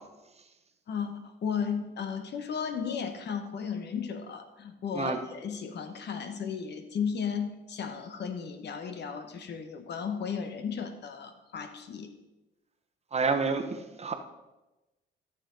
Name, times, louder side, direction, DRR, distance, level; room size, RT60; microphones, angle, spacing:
voice 1, 0.9-12.1, left 6 dB, 60° left, 8 dB, 1.1 m, -35 dB
voice 2, 13.1-14.1, right 4 dB, 30° right, 6 dB, 1.0 m, -28 dB
13.0 x 6.9 x 3.9 m, 1.0 s
cardioid pair, 90°, 20 cm